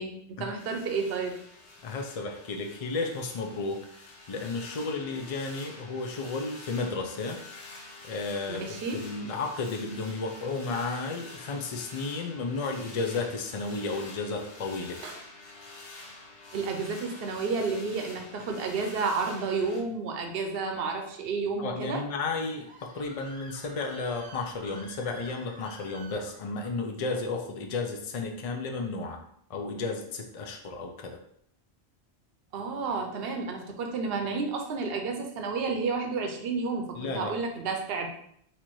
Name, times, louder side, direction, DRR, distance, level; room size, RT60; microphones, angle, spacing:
voice 1, 0.0-1.4 8.5-9.0 15.0-15.2 16.5-22.0 32.5-38.1, right 4 dB, 65° right, 4 dB, 0.9 m, -31 dB
sound 1, 0.6-19.8, left 2 dB, 80° left, 1.3 m, -47 dB
voice 2, 1.8-7.4 8.0-15.0 21.6-29.2 29.5-31.2 36.9-37.3, left 3 dB, 45° left, 3 dB, 0.5 m, -33 dB
Screaming, 22.2-26.8, right 1 dB, 10° right, 0.5 m, -49 dB
4.3 x 2.5 x 4.5 m, 0.68 s
omnidirectional pair, 1.1 m